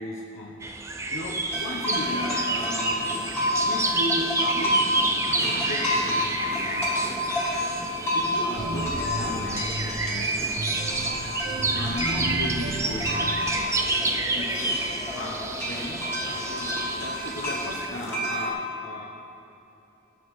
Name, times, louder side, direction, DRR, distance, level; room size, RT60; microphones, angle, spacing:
voice 1, 0.0-3.2 3.6-6.9 8.1-10.5 11.7-13.3 14.4-14.8 15.0-19.0, left 1 dB, 85° left, -4 dB, 0.9 m, -36 dB
sound 1, 0.6-17.9, right 2 dB, 15° right, 0.4 m, -30 dB
sound 2, 1.5-18.5, left 1 dB, 15° left, 1.6 m, -30 dB
sound 3, 8.5-13.6, right 2 dB, 60° right, 0.7 m, -33 dB
15.0 x 7.1 x 3.2 m, 2.9 s
head